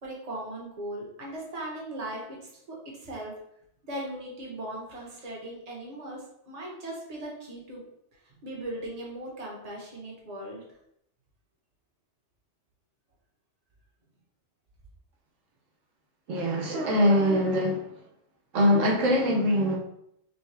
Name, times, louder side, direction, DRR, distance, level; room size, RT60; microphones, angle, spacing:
voice 1, 0.0-3.3 3.8-7.8 8.2-10.6, right 1 dB, 35° right, -3 dB, 1.1 m, -38 dB
voice 2, 16.3-17.9 18.5-19.8, left 1 dB, 85° right, -1 dB, 1.2 m, -23 dB
5.6 x 2.2 x 3.3 m, 0.76 s
omnidirectional pair, 1.3 m